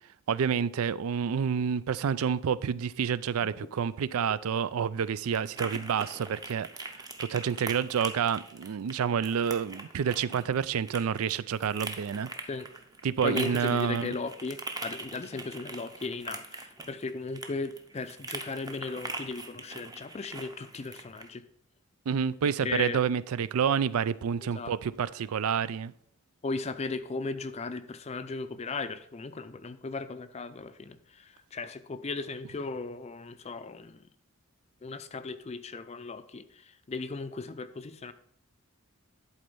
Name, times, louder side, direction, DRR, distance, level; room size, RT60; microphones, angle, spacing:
voice 1, 0.3-6.7 6.9-12.3 13.0-14.2 22.1-25.9, right 7 dB, 80° right, 0.4 m, -29 dB
sound 1, 4.1-21.3, right 3 dB, 20° right, 0.7 m, -42 dB
voice 2, 13.2-21.4 22.6-23.0 24.5-24.7 26.4-34.1 34.8-38.1, left 3 dB, 30° left, 0.4 m, -37 dB
11.0 x 4.2 x 5.4 m
head